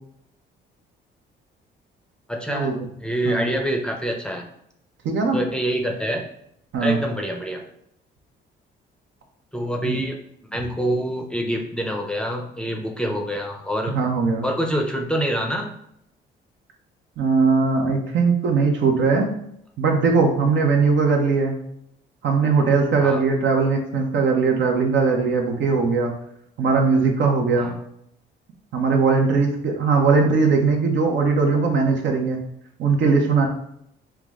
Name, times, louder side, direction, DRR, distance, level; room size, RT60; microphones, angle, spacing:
voice 1, 2.3-2.7 3.0-4.5 5.3-6.2 6.8-7.6 9.5-14.0 14.4-15.7 23.0-23.2 27.6-27.8, equal, 5° left, 2 dB, 0.6 m, -26 dB
voice 2, 5.0-5.4 6.7-7.0 9.8-10.0 13.9-14.5 17.2-19.3 19.8-21.6 22.2-26.1 26.6-27.7 28.7-32.4 32.8-33.5, right 4 dB, 65° right, 2 dB, 0.9 m, -20 dB
4.6 x 2.1 x 3.5 m, 0.73 s
cardioid pair, 90°, 20 cm